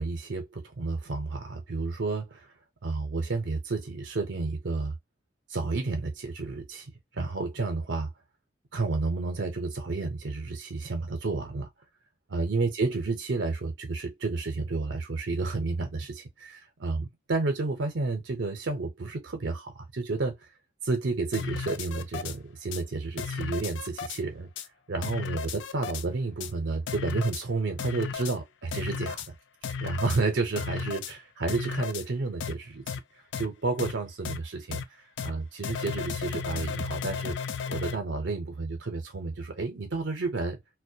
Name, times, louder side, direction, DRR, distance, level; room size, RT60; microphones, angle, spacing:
voice 1, 0.0-2.5 2.8-4.9 5.5-8.1 8.7-11.7 12.3-20.4 20.8-24.5 24.9-29.3 29.8-33.0 33.4-34.8 35.2-37.4 37.7-40.6, right 3 dB, 70° right, 0.6 m, -31 dB
sound 1, 21.3-22.3 22.7-22.8 23.2-24.2 24.6-24.7 25.0-26.0 26.4-26.5 26.9-27.4 27.8-28.3 28.7-29.3 29.6-30.2 30.6-31.1 31.5-32.0 32.4-32.5 32.9-33.0 33.3-33.5 33.8-33.9 34.2-34.4 34.7-34.8 35.2-35.3 35.6-37.9, left 6 dB, 75° left, 0.3 m, -34 dB
2.2 x 2.1 x 2.6 m
head